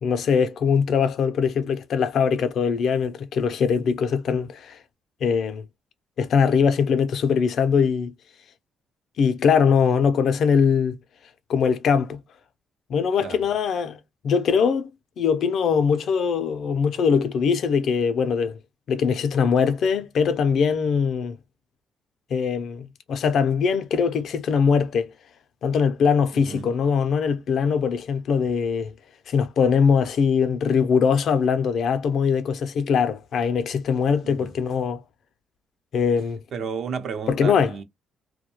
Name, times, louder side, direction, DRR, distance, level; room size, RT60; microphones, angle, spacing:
voice 1, 0.0-4.8 5.2-5.6 6.2-8.1 9.2-11.0 11.5-12.2 12.9-14.0 14.2-14.9 15.2-18.6 18.9-21.4 22.3-25.1 25.6-28.9 29.3-35.0 35.9-36.4 37.3-37.7, left 6 dB, 65° left, 0.4 m, -22 dB
voice 2, 13.2-13.5 26.3-26.7 34.2-34.5 36.5-37.8, right 6 dB, 65° right, 0.6 m, -33 dB
2.3 x 2.1 x 2.9 m
cardioid pair, 90°, 0 cm